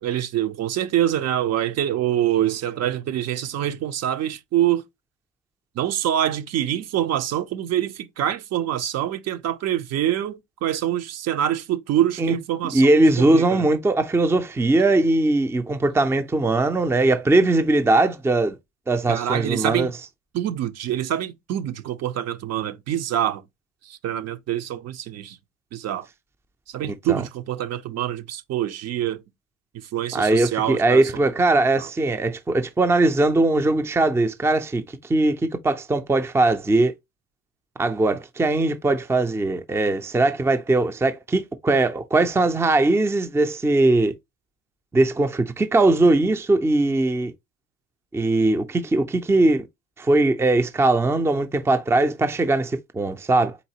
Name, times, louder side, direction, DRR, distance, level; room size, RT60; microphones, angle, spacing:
voice 1, 0.0-4.8 5.8-13.7 19.1-19.9 20.3-23.4 23.8-25.4 25.7-26.1 26.7-29.2 29.7-31.0 31.8-31.9, right 11 dB, 55° right, 0.7 m, -25 dB
voice 2, 12.7-18.6 18.9-19.9 26.9-27.2 30.1-34.8 35.1-36.9 37.8-44.1 44.9-47.3 48.1-49.6 50.0-53.6, right 2 dB, 10° right, 0.5 m, -20 dB
4.0 x 3.9 x 2.8 m
cardioid pair, 115°, 31 cm